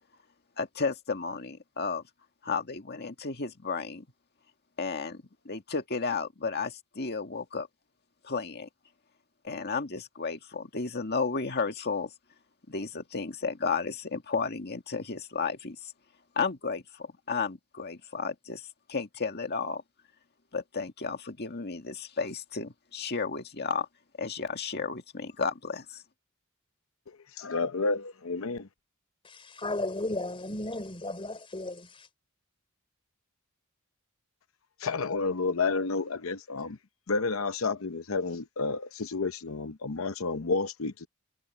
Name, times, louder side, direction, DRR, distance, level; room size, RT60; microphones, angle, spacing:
voice 1, 0.6-2.0 2.4-4.1 4.8-7.7 8.2-8.7 9.4-12.1 12.7-15.9 16.4-19.8 20.5-23.9 24.2-26.0, left 4 dB, 50° left, 2.0 m, -33 dB
voice 2, 27.4-28.7 34.8-36.8 37.1-41.1, left 4 dB, 75° left, 0.8 m, -30 dB
voice 3, 29.2-32.1, left 2 dB, 25° left, 3.4 m, -35 dB
head